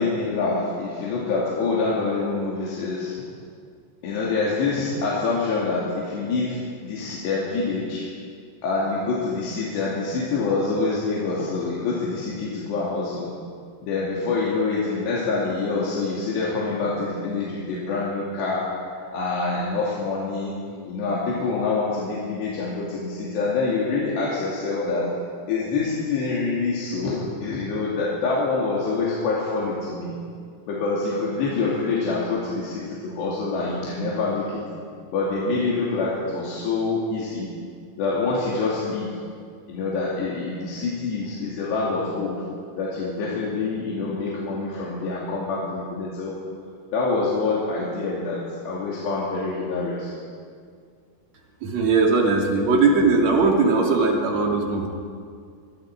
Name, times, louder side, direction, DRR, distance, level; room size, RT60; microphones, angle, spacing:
voice 1, 0.0-3.3 4.0-8.1 8.6-13.3 13.8-18.7 19.1-20.6 20.9-25.1 25.5-30.2 30.7-34.6 35.1-37.5 38.0-39.1 39.7-42.4 42.8-46.3 46.9-50.2, left 3 dB, 80° left, -6 dB, 4.9 m, -26 dB
voice 2, 51.6-54.9, right 3 dB, 45° right, 0 dB, 3.6 m, -19 dB
25.0 x 22.5 x 5.0 m, 2.1 s
omnidirectional pair, 4.9 m